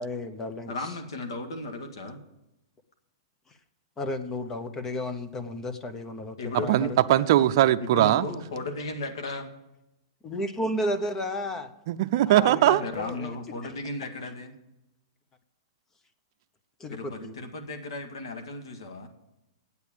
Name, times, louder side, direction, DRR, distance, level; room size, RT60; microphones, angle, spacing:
voice 1, 0.0-0.7 4.0-7.0 10.2-11.7 12.3-13.3 16.8-17.4, left 1 dB, 15° left, 0.9 m, -33 dB
voice 2, 0.7-2.2 6.4-6.9 7.8-9.5 12.4-14.5 16.9-19.1, left 2 dB, 80° left, 1.9 m, -35 dB
voice 3, 6.7-8.3 11.9-12.8, right 13 dB, 50° right, 0.5 m, -20 dB
8.9 x 8.2 x 8.6 m
hypercardioid pair, 150°, 3 cm